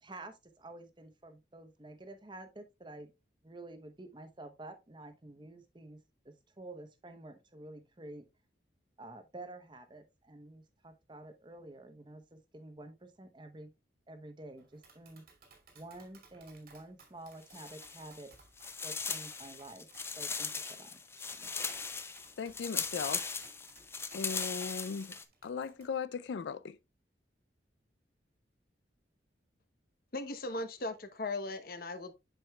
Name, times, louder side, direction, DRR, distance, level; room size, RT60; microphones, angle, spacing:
voice 1, 0.0-3.1 3.4-8.2 9.0-13.7 14.1-15.2 15.7-18.3 18.8-19.9 20.2-21.5, right 2 dB, 25° right, 0.8 m, -50 dB
Tap, 14.6-25.8, right 4 dB, 55° right, 2.2 m, -62 dB
sound 1, 17.4-18.3 18.6-25.2, left 5 dB, 15° left, 0.5 m, -39 dB
voice 2, 22.4-23.3 24.1-26.8, left 5 dB, 85° left, 0.4 m, -38 dB
voice 3, 30.1-32.1, left 2 dB, 55° left, 0.9 m, -38 dB
7.7 x 6.3 x 2.3 m
head